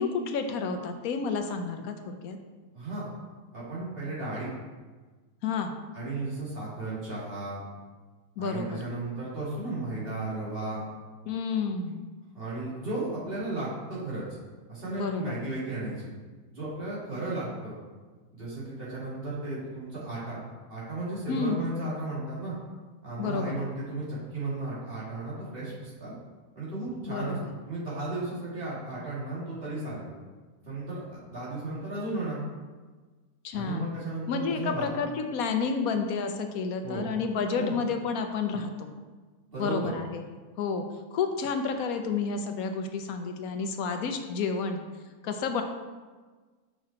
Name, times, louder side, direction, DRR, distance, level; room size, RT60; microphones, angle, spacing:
voice 1, 0.0-2.4 5.4-5.7 8.4-8.8 11.3-12.0 15.0-15.4 21.3-21.6 23.2-23.6 27.1-27.5 33.4-33.9 34.3-38.9 39.6-40.2 40.6-40.8 41.1-44.8 45.2-45.6, left 5 dB, 70° left, 6 dB, 1.0 m, -30 dB
voice 2, 2.7-3.1 3.5-4.5 5.9-7.6 8.4-10.8 12.3-14.2 14.7-16.1 16.5-17.7 18.3-20.4 20.7-22.5 23.0-26.1 26.5-27.4 27.6-30.1 30.6-32.4 33.5-34.9 36.8-37.1 37.5-37.8 39.5-39.9, right 2 dB, 35° right, -8 dB, 2.5 m, -34 dB
5.8 x 5.7 x 4.3 m, 1.4 s
omnidirectional pair, 1.7 m